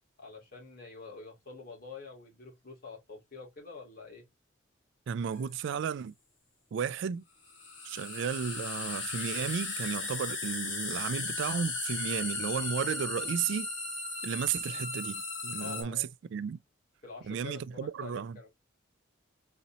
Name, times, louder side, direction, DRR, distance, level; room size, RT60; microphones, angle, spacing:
voice 1, 0.2-4.2 15.6-16.1 17.0-18.5, left 4 dB, 50° left, 2.6 m, -47 dB
voice 2, 5.1-6.1 6.7-7.2 7.8-13.7 14.2-16.6 17.3-18.4, right 7 dB, 65° right, 0.3 m, -34 dB
sound 1, 5.3-5.4 7.5-15.8, left 3 dB, 75° left, 2.5 m, -36 dB
4.2 x 4.0 x 2.8 m
head